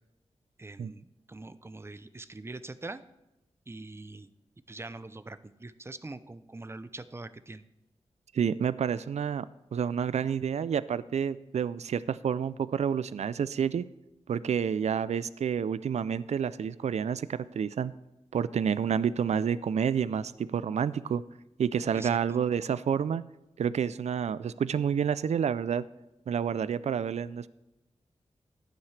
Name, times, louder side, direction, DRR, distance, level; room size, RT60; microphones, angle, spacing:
voice 1, 0.6-3.0 3.7-4.3 4.7-7.6 21.9-22.2, right 2 dB, 20° right, 14 dB, 0.5 m, -43 dB
voice 2, 8.3-9.5 9.7-13.8 14.3-17.9 18.3-21.2 21.6-23.2 23.6-25.8 26.3-27.5, right 7 dB, 75° right, 16 dB, 0.4 m, -29 dB
14.5 x 10.5 x 3.3 m, 0.94 s
wide cardioid pair, 75°, 12 cm